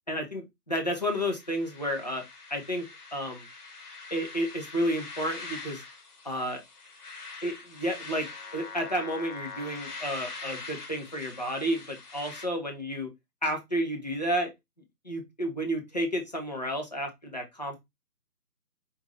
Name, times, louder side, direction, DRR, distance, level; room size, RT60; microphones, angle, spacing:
voice 1, 0.1-2.2 2.5-2.9 3.1-3.5 4.1-5.8 6.2-6.6 7.4-8.3 8.5-13.1 13.4-14.5 15.0-17.8, equal, 25° left, 2 dB, 0.6 m, -31 dB
sound 1, 0.9-12.5, left 4 dB, 65° left, 1.3 m, -43 dB
5.0 x 2.6 x 3.0 m, 0.19 s
figure-of-eight pair, 155°, 49 cm